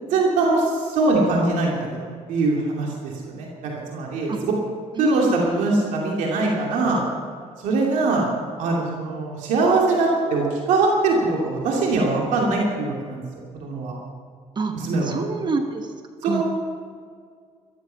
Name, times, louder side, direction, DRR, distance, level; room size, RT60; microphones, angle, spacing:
voice 1, 0.1-4.6 5.0-7.0 7.6-8.3 8.6-13.2 13.5-13.9 14.7-15.1 16.2-16.4, right 3 dB, 85° right, -2 dB, 2.7 m, -22 dB
voice 2, 5.0-5.6 14.6-14.7 15.0-15.9 16.3-16.4, right 4 dB, 35° right, 5 dB, 1.3 m, -27 dB
14.5 x 13.5 x 5.8 m, 2.1 s
cardioid pair, 105°, 13 cm